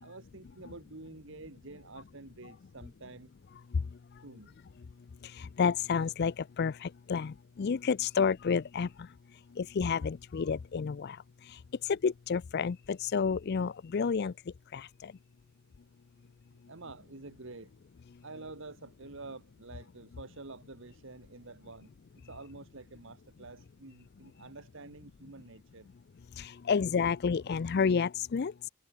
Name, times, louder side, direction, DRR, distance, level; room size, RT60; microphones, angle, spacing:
voice 1, 0.0-3.3 4.2-4.6 16.7-17.7 18.2-21.9 22.2-25.9, right 3 dB, 55° right, 1.4 m, -48 dB
voice 2, 5.2-9.1 9.6-11.2 11.5-14.3 14.7-15.1 26.4-28.5, left 6 dB, 45° left, 0.4 m, -30 dB
head